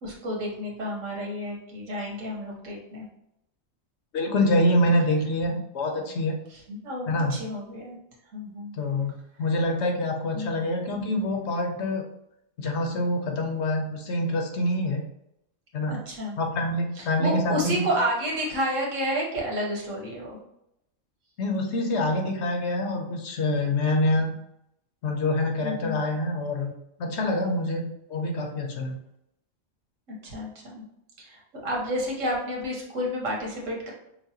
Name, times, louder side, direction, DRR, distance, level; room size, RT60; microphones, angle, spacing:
voice 1, 0.0-3.1 4.2-4.3 6.0-6.1 6.5-8.0 8.3-8.8 10.3-10.7 15.9-16.4 16.9-20.4 25.6-26.0 30.1-30.8 31.2-33.9, equal, 85° right, -2 dB, 1.5 m, -31 dB
voice 2, 4.1-6.4 7.1-7.4 8.8-9.1 9.4-12.0 12.6-15.0 15.7-16.0 16.4-17.9 21.4-24.3 25.0-26.7 27.0-29.0, left 1 dB, 65° left, 3 dB, 1.0 m, -26 dB
5.8 x 2.2 x 2.8 m, 0.80 s
omnidirectional pair, 1.3 m